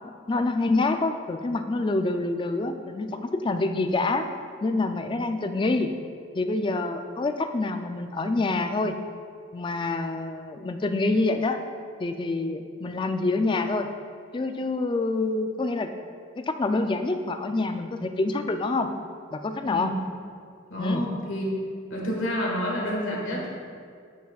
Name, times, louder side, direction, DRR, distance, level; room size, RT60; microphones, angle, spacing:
voice 1, 0.0-4.3 4.6-5.9 6.3-9.0 9.5-11.6 12.0-13.9 14.3-15.9 16.4-18.9 19.3-19.9 20.8-21.0, left 2 dB, 25° left, 7 dB, 0.3 m, -26 dB
voice 2, 20.7-21.5 21.9-23.5, equal, 80° left, -3 dB, 1.4 m, -29 dB
10.0 x 5.8 x 2.3 m, 2.2 s
head